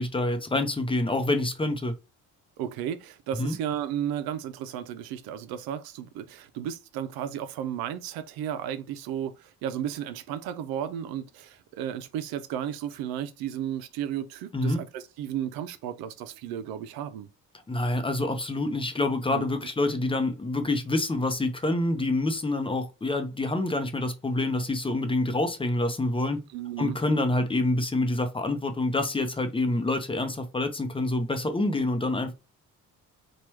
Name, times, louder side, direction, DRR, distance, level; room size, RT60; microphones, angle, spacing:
voice 1, 0.0-1.9 3.4-3.5 14.5-14.8 17.7-26.4 26.8-32.3, left 2 dB, 15° left, 0.6 m, -27 dB
voice 2, 2.6-17.3 19.3-19.5 26.5-27.0, right 10 dB, 90° right, 0.5 m, -34 dB
3.0 x 2.2 x 3.1 m
cardioid pair, 80°, 35 cm